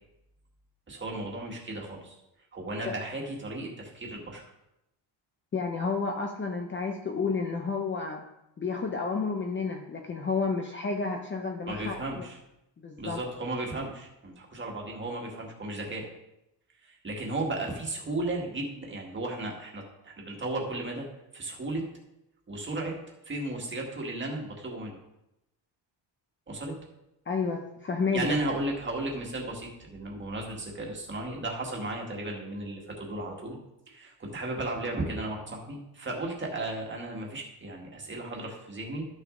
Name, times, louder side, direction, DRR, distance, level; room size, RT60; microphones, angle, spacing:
voice 1, 0.9-2.2 2.5-4.4 11.7-12.4 13.0-16.0 16.8-21.1 21.3-21.8 22.5-23.0 23.2-25.0 26.5-26.8 28.1-33.6 33.9-39.1, right 2 dB, 25° right, 0 dB, 1.7 m, -35 dB
voice 2, 5.5-8.2 8.6-12.3 12.8-13.2 27.3-28.4, left 4 dB, 25° left, 2 dB, 0.6 m, -31 dB
12.0 x 6.3 x 3.8 m, 0.88 s
cardioid pair, 180°, 48 cm